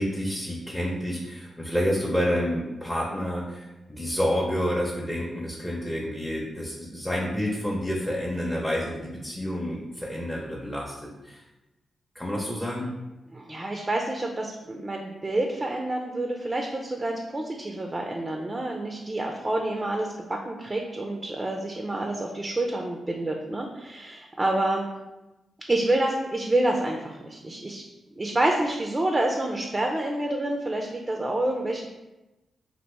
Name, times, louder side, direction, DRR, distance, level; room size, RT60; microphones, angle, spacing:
voice 1, 0.0-11.4 12.1-12.9, equal, 10° left, -4 dB, 0.7 m, -29 dB
voice 2, 13.3-24.9 25.7-27.8 28.2-31.9, right 1 dB, 30° right, 1 dB, 0.4 m, -28 dB
2.8 x 2.5 x 3.3 m, 1.0 s
supercardioid pair, 40°, 0 cm